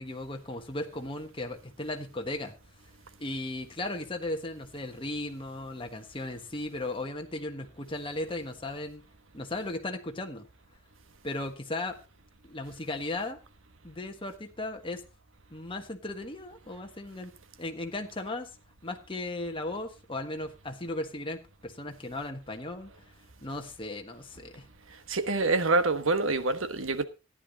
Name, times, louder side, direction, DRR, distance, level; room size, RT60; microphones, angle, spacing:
voice 1, 0.0-2.5 3.2-9.0 9.3-10.4 11.2-12.0 12.4-13.4 13.8-15.0 15.5-17.3 17.6-18.5 18.8-22.9 23.4-24.7, left 2 dB, 25° left, 1.4 m, -36 dB
voice 2, 25.1-27.0, right 3 dB, 80° right, 1.3 m, -26 dB
14.0 x 10.0 x 4.0 m
head